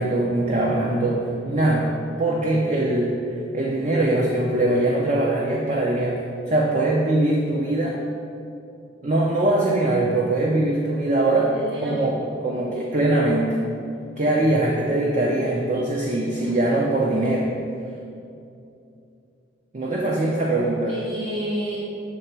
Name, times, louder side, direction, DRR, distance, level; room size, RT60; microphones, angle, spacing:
voice 1, 0.0-1.9 2.2-3.2 3.5-6.2 6.5-8.0 9.0-11.5 11.8-13.6 14.2-17.5 19.7-20.9, right 2 dB, 40° right, -2 dB, 0.5 m, -22 dB
voice 2, 11.5-12.0 16.3-16.6 20.9-21.9, equal, 80° right, -9 dB, 1.2 m, -31 dB
7.9 x 3.2 x 4.5 m, 2.6 s
head